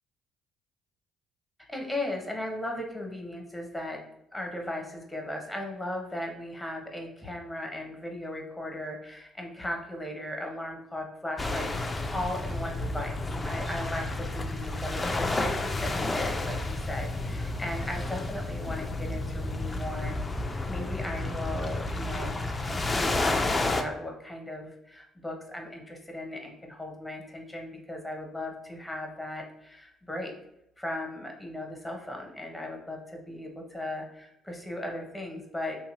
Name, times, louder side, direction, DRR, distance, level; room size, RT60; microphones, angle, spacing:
voice 1, 1.7-4.0 4.3-13.2 13.4-20.1 20.7-22.4 22.7-30.3 30.8-35.8, left 1 dB, 10° left, 1 dB, 0.9 m, -37 dB
sound 1, 11.4-23.8, left 2 dB, 25° left, 0.4 m, -31 dB
2.9 x 2.6 x 2.6 m, 0.79 s
hypercardioid pair, 50°, 0 cm